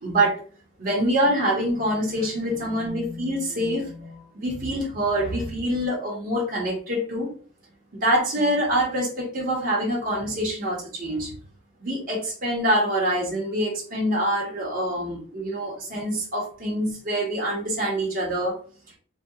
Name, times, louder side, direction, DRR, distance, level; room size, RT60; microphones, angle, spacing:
voice 1, 0.0-0.3 0.8-7.3 8.0-11.3 11.8-18.5, right 1 dB, 45° right, -4 dB, 0.9 m, -25 dB
2.7 x 2.2 x 2.3 m, 0.41 s
head